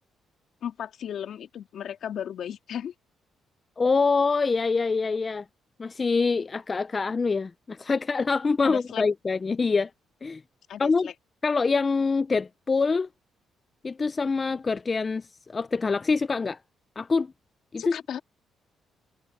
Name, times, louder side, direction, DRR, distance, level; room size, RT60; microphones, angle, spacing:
voice 1, 0.6-2.9 8.6-9.0 10.7-11.1 17.8-18.2, left 9 dB, 65° left, 2.7 m, -35 dB
voice 2, 3.8-5.4 5.8-9.9 10.2-10.4 10.8-11.1 11.4-13.1 13.8-15.3 15.5-16.6 17.0-17.3 17.7-18.0, left 4 dB, 30° left, 0.5 m, -25 dB
cardioid pair, 90°, 0 cm